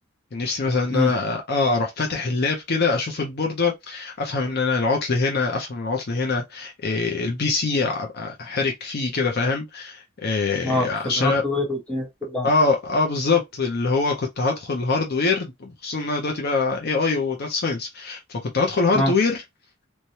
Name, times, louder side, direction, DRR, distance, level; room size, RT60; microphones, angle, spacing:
voice 1, 0.3-11.4 12.4-19.4, left 3 dB, 50° left, 0.6 m, -24 dB
voice 2, 10.6-12.5 18.9-19.1, left 1 dB, 5° left, 1.1 m, -25 dB
3.1 x 2.2 x 2.7 m
head